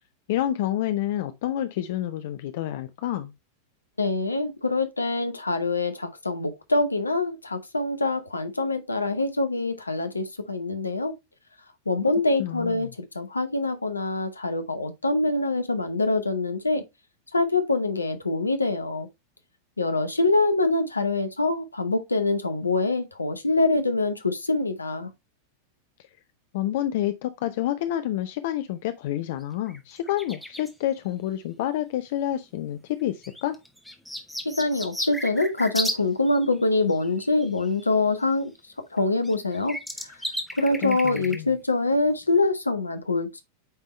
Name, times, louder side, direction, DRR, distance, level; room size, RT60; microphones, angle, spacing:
voice 1, 0.3-3.3 12.4-12.9 26.5-33.6 40.8-41.5, left 12 dB, 50° left, 0.5 m, -28 dB
voice 2, 4.0-11.1 11.9-12.9 13.1-16.8 17.3-19.1 19.8-25.1 34.6-38.5 38.9-39.8 40.6-43.4, left 2 dB, 80° left, 0.9 m, -25 dB
sound 1, 29.4-29.5 29.7-30.7 32.1-32.2 33.2-36.0 36.3-37.9 39.0-39.1 39.2-41.4 42.0-42.1, left 1 dB, ahead, 1.1 m, -34 dB
8.8 x 3.6 x 3.1 m
figure-of-eight pair, 90°, 0 cm